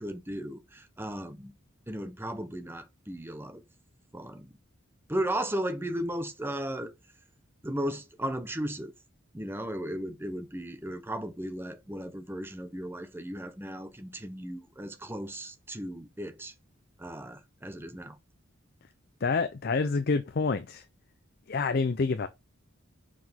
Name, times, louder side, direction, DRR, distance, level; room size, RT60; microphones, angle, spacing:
voice 1, 0.0-1.5 1.9-3.6 4.1-4.5 5.1-6.9 7.6-8.9 9.3-16.5 17.0-18.2, right 1 dB, 10° right, 0.8 m, -35 dB
voice 2, 19.2-20.8 21.5-22.3, left 4 dB, 50° left, 0.5 m, -27 dB
5.8 x 4.9 x 3.5 m
head